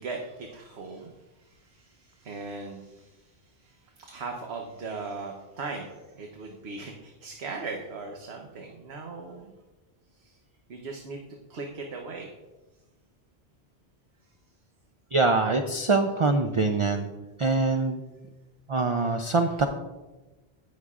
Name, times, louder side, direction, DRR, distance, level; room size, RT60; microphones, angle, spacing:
voice 1, 0.0-9.5 10.2-10.4 10.7-11.2 11.5-12.3, right 3 dB, 80° right, 2 dB, 1.2 m, -39 dB
voice 2, 15.1-17.1 17.4-18.0 18.7-19.7, right 3 dB, 45° right, 6 dB, 0.4 m, -24 dB
18.0 x 6.4 x 2.4 m, 1.1 s
omnidirectional pair, 1.1 m